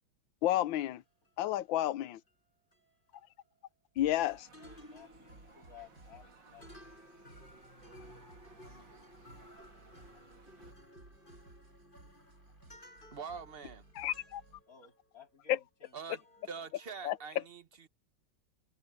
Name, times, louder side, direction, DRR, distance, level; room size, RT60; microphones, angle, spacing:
voice 1, 0.4-1.0 1.4-2.2 4.0-4.5 14.0-14.4 15.5-15.6 17.0-17.2, left 13 dB, 85° left, 1.5 m, -31 dB
sound 1, 0.8-4.2 4.5-15.6 15.8-17.3, left 1 dB, 25° left, 8.1 m, -59 dB
sound 2, 4.0-14.6, right 2 dB, 50° right, 5.1 m, -59 dB
sound 3, 4.1-10.7, right 5 dB, 70° right, 3.1 m, -62 dB
voice 2, 4.6-6.9 14.7-16.2 16.6-16.7, left 7 dB, 45° left, 3.1 m, -57 dB
voice 3, 13.1-13.8 15.9-16.2 16.5-17.9, right 5 dB, 35° right, 1.2 m, -44 dB
omnidirectional pair, 2.1 m